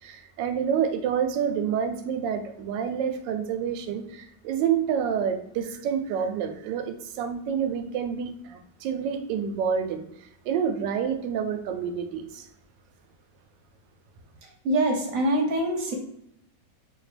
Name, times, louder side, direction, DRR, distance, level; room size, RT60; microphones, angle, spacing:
voice 1, 0.0-10.0 10.4-12.5, right 7 dB, 85° right, 1.3 m, -28 dB
voice 2, 14.6-15.9, right 1 dB, 60° right, 1.0 m, -24 dB
4.2 x 2.7 x 3.2 m
omnidirectional pair, 1.9 m